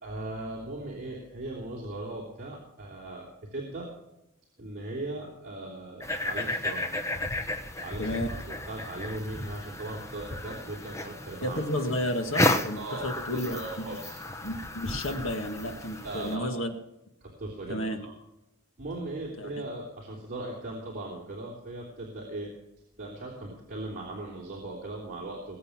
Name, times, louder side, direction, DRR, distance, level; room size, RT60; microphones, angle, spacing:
voice 1, 0.0-3.3 3.5-3.9 4.6-6.8 7.8-11.6 12.8-13.1 13.3-14.2 16.0-16.6 17.2-18.1 18.8-22.5 23.0-25.6, right 2 dB, 40° right, -3 dB, 3.3 m, -38 dB
sound 1, 6.0-16.3, left 1 dB, 15° left, 1.0 m, -33 dB
voice 2, 8.0-8.3 11.4-13.6 14.4-16.7 17.7-18.1 19.4-19.5, left 1 dB, 65° left, 5 dB, 1.9 m, -32 dB
21.5 x 8.3 x 6.0 m, 0.89 s
head